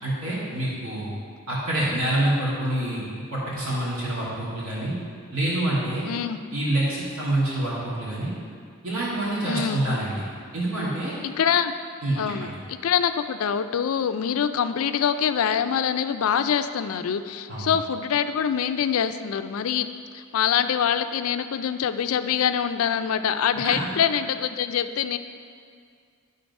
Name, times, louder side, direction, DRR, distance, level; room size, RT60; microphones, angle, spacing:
voice 1, 0.0-1.1 1.5-3.0 3.3-5.0 5.3-6.0 6.5-8.3 8.8-10.1 10.5-11.1 12.0-12.5 17.5-17.7 23.6-23.8, right 1 dB, 80° right, -7 dB, 2.1 m, -26 dB
voice 2, 6.0-6.4 9.4-9.8 11.2-11.8 12.1-19.9 20.1-25.2, left 8 dB, 90° left, 10 dB, 0.4 m, -25 dB
11.5 x 3.9 x 5.3 m, 2.2 s
head